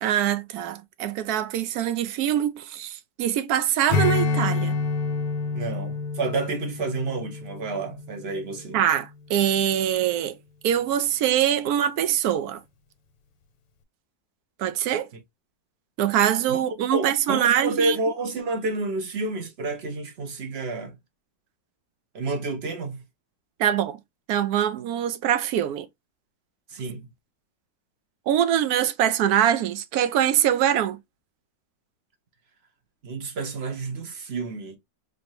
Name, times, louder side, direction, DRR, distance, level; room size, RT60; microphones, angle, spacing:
voice 1, 0.0-4.8 8.7-10.4 10.6-12.6 14.6-15.1 16.0-18.0 23.6-24.0 24.3-25.9 28.3-31.0, right 10 dB, 70° right, 0.9 m, -23 dB
Strum, 3.9-8.7, left 4 dB, 85° left, 1.4 m, -28 dB
voice 2, 5.5-8.8 16.5-16.6 16.9-20.9 22.1-23.0 26.7-27.0 33.0-34.8, right 3 dB, 45° right, 1.0 m, -30 dB
4.0 x 2.8 x 3.1 m
omnidirectional pair, 2.0 m